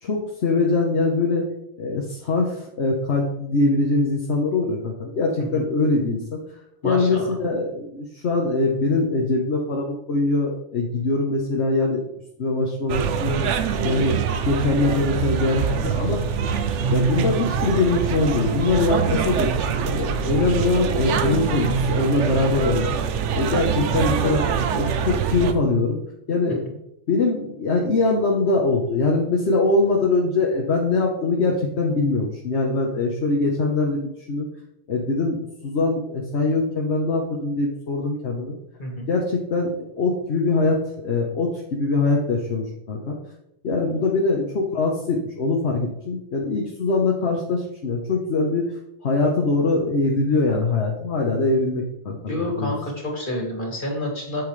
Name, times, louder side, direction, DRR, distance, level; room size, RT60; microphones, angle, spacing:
voice 1, 0.0-1.4 1.8-6.4 6.8-12.0 12.4-13.4 13.8-14.2 14.5-16.2 16.9-19.5 19.8-23.0 23.3-24.4 24.7-26.0 26.3-26.8 27.1-34.5 34.9-38.6 39.1-43.2 43.6-48.7 49.0-52.7, left 3 dB, 70° left, -1 dB, 1.3 m, -22 dB
voice 2, 6.8-7.4 20.1-20.3 38.8-39.1 52.3-54.4, left 1 dB, 45° left, 0 dB, 2.3 m, -29 dB
sound 1, 12.9-25.5, right 6 dB, 90° right, 1.0 m, -24 dB
8.7 x 7.7 x 3.2 m, 0.82 s
omnidirectional pair, 1.2 m